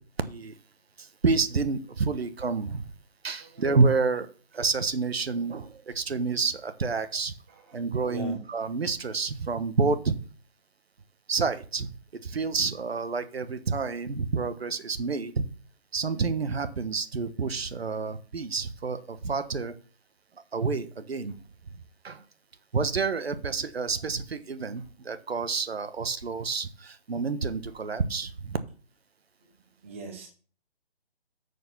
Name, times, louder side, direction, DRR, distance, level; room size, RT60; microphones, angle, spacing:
voice 1, 0.2-0.5 1.0-2.9 3.2-4.3 4.5-7.3 7.7-10.2 11.3-11.9 12.2-15.4 15.9-19.7 20.5-21.4 22.0-22.2 22.7-28.6, right 4 dB, 70° right, 12 dB, 1.2 m, -28 dB
voice 2, 7.5-7.8 8.1-8.4 27.8-28.0 29.8-30.3, right 2 dB, 10° right, 3 dB, 1.0 m, -42 dB
6.8 x 6.6 x 7.0 m, 0.41 s
hypercardioid pair, 170°, 32 cm